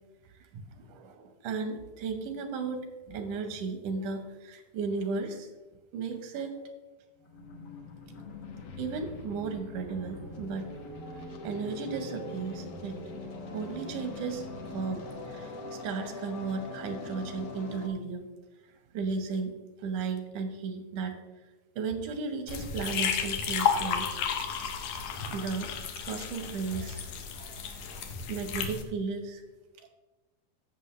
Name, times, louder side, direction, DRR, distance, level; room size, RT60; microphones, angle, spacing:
voice 1, 0.2-5.5 5.9-6.6 8.8-10.7 11.4-13.0 13.5-14.5 14.7-18.3 18.6-19.5 19.8-21.1 21.8-24.1 25.3-25.7 26.0-27.0 27.3-29.4 29.8-29.9, right 4 dB, 85° right, 6 dB, 2.6 m, -35 dB
sound 1, 7.1-17.9, left 2 dB, 65° left, 1.1 m, -42 dB
sound 2, 22.5-28.8, left 7 dB, 80° left, 2.4 m, -32 dB
14.5 x 6.7 x 3.1 m, 1.1 s
omnidirectional pair, 3.4 m